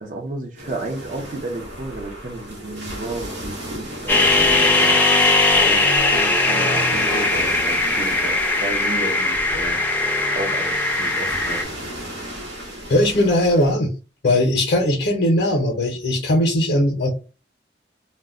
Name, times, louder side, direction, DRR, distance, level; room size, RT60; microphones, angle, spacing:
voice 1, 0.0-5.0 5.6-9.8 10.3-11.6 14.7-14.8, right 2 dB, 45° right, 0.5 m, -32 dB
sound 1, 0.6-13.7, equal, 85° right, 0.9 m, -35 dB
sound 2, 4.1-11.6, left 2 dB, 10° left, 0.4 m, -19 dB
voice 2, 12.9-13.9 14.2-17.1, left 1 dB, 65° left, 0.5 m, -19 dB
2.1 x 2.1 x 3.5 m
head